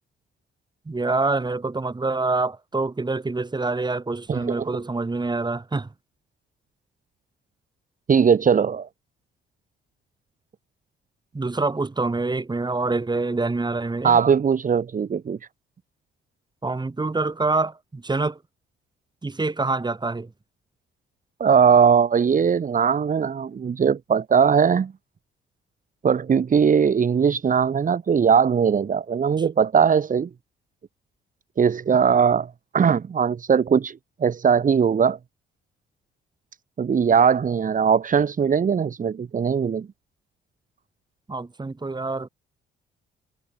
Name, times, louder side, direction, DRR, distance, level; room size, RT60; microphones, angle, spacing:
voice 1, 0.9-5.9 11.3-14.2 16.6-18.4 19.2-20.3 41.3-42.3, right 3 dB, 20° right, 7.6 m, -26 dB
voice 2, 4.3-4.7 8.1-8.9 14.0-15.4 21.4-24.9 26.0-30.3 31.6-35.2 36.8-39.9, right 7 dB, 40° right, 2.0 m, -20 dB
cardioid pair, 90°, 20 cm